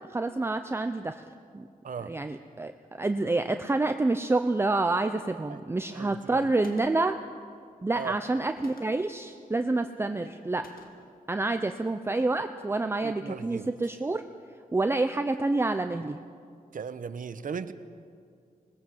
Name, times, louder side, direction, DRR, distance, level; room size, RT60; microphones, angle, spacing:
voice 1, 0.1-1.2 1.5-1.7 2.1-7.2 7.8-10.6 11.3-14.2 14.7-16.2, right 2 dB, 15° right, 8 dB, 0.6 m, -28 dB
voice 2, 1.8-2.2 5.5-5.6 5.9-6.5 8.0-8.2 13.0-14.0 16.7-17.7, right 6 dB, 65° right, 12 dB, 1.0 m, -38 dB
Gunshot gunfire, 6.6-7.2 8.6-9.2 10.6-11.2, left 3 dB, 80° left, 2.3 m, -51 dB
25.5 x 20.0 x 7.7 m, 2.3 s
wide cardioid pair, 170°, 15 cm